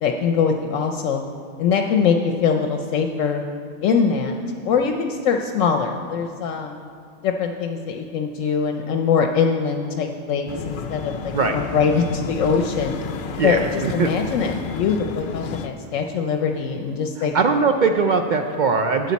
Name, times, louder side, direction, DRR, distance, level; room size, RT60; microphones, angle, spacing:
voice 1, 0.0-1.2 1.6-3.4 3.8-4.4 4.6-6.8 7.2-13.0 13.4-17.3, left 6 dB, 75° left, 4 dB, 1.0 m, -22 dB
sound 1, 10.5-15.7, left 5 dB, 60° left, 0.5 m, -31 dB
voice 2, 13.4-14.1 17.3-19.1, right 4 dB, 75° right, 6 dB, 0.4 m, -20 dB
12.5 x 8.2 x 4.1 m, 2.2 s
omnidirectional pair, 1.3 m